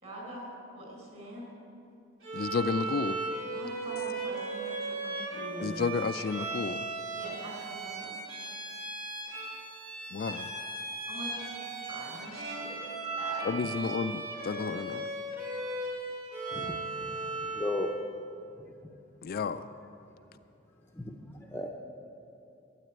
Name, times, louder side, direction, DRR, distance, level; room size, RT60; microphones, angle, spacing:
voice 1, 0.0-0.5 0.7-1.5 3.5-5.9 7.1-8.2 11.1-12.8 13.2-13.5 13.9-14.0, right 1 dB, 35° right, -2 dB, 4.3 m, -43 dB
Bowed string instrument, 2.2-18.0, right 3 dB, 80° right, 3.0 m, -37 dB
voice 2, 2.3-3.2 5.6-6.8 10.1-10.5 13.4-15.1 19.2-19.6, left 5 dB, 50° left, 11 dB, 0.4 m, -31 dB
voice 3, 16.5-17.1 17.4-17.9 20.9-21.7, left 2 dB, 10° left, 1 dB, 0.7 m, -36 dB
12.5 x 9.2 x 9.0 m, 2.7 s
head